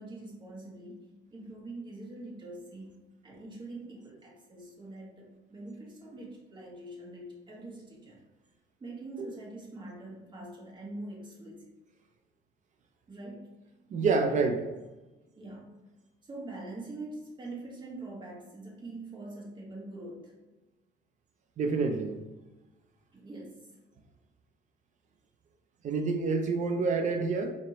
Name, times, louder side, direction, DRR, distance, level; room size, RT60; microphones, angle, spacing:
voice 1, 0.0-2.9 3.2-8.2 8.8-11.7 13.1-13.6 15.4-15.7 16.2-20.3 23.1-23.8, right 2 dB, 25° right, -3 dB, 1.3 m, -44 dB
voice 2, 13.9-14.7 21.6-22.2 25.8-27.5, right 4 dB, 45° right, 5 dB, 0.5 m, -27 dB
4.3 x 2.9 x 2.9 m, 1.1 s
cardioid pair, 110°, 17 cm